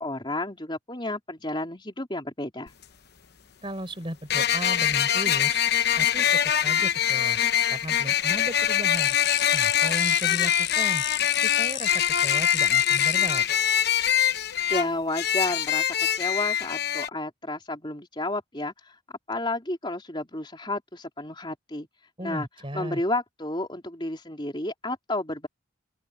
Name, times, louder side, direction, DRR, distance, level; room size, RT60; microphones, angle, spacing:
voice 1, 0.0-2.7 14.7-19.0 19.3-21.9 22.2-22.5 22.7-25.5, left 2 dB, 20° left, 3.7 m, -31 dB
sound 1, 2.7-2.8 4.3-17.1, left 10 dB, 50° left, 0.9 m, -24 dB
voice 2, 3.6-5.6 6.0-7.4 7.7-9.2 9.5-11.0 11.3-13.4 22.2-23.0, right 1 dB, 25° right, 4.9 m, -35 dB
sound 2, 8.9-13.4, left 15 dB, 65° left, 5.5 m, -33 dB
open air
head